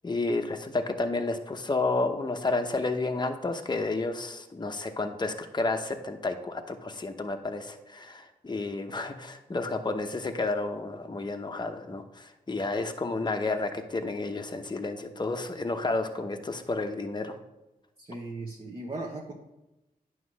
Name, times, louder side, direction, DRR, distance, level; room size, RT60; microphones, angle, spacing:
voice 1, 0.0-17.4, left 3 dB, 25° left, 5 dB, 0.9 m, -31 dB
voice 2, 18.0-19.3, right 2 dB, 35° right, -1 dB, 1.2 m, -37 dB
9.2 x 3.1 x 6.3 m, 1.0 s
cardioid pair, 45°, 16 cm